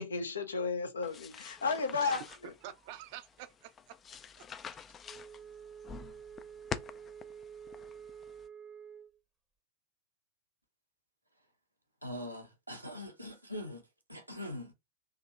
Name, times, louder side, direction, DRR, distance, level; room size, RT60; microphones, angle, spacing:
voice 1, 0.0-2.5, left 4 dB, 70° left, 0.6 m, -34 dB
sound 1, 1.0-8.5, left 7 dB, 25° left, 0.3 m, -47 dB
voice 2, 1.9-4.4 4.7-5.0, right 12 dB, 50° right, 0.5 m, -49 dB
Wind instrument woodwind instrument, 5.0-9.2, right 7 dB, 15° right, 0.7 m, -49 dB
voice 3, 12.0-13.8 14.1-14.7, left 1 dB, 85° right, 1.0 m, -42 dB
3.8 x 2.8 x 2.4 m
figure-of-eight pair, 90°, 0 cm